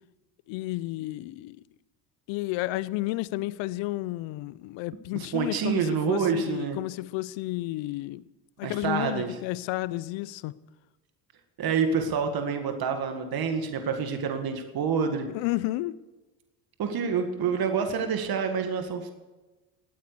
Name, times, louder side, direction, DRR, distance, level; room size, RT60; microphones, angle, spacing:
voice 1, 0.5-1.6 2.3-8.2 8.6-10.5 15.3-16.0, left 18 dB, 65° left, 0.7 m, -31 dB
voice 2, 5.1-6.8 8.6-9.4 11.6-15.3 16.8-19.1, right 6 dB, 50° right, 2.0 m, -27 dB
17.5 x 9.4 x 6.8 m
supercardioid pair, 85°, 48 cm